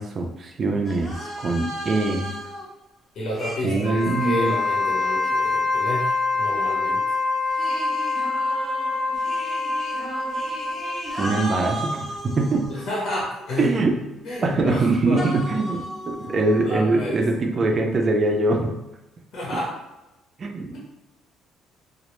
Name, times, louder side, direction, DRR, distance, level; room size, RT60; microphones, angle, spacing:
voice 1, 0.0-2.3 3.6-4.5 11.2-12.7 13.6-14.0 14.4-18.8 20.4-20.8, right 2 dB, 35° right, 2 dB, 0.4 m, -23 dB
sound 1, 0.8-2.7 3.3-5.6 7.5-13.2 15.2-16.6, equal, 20° left, 0.7 m, -35 dB
voice 2, 3.1-7.0 12.7-13.7 14.2-15.2 16.6-17.2 19.3-19.7, left 1 dB, 55° left, -5 dB, 0.7 m, -30 dB
Wind instrument woodwind instrument, 3.8-11.3, left 3 dB, 75° right, 0.6 m, -25 dB
2.0 x 2.0 x 3.0 m, 0.97 s
cardioid pair, 125°, 0 cm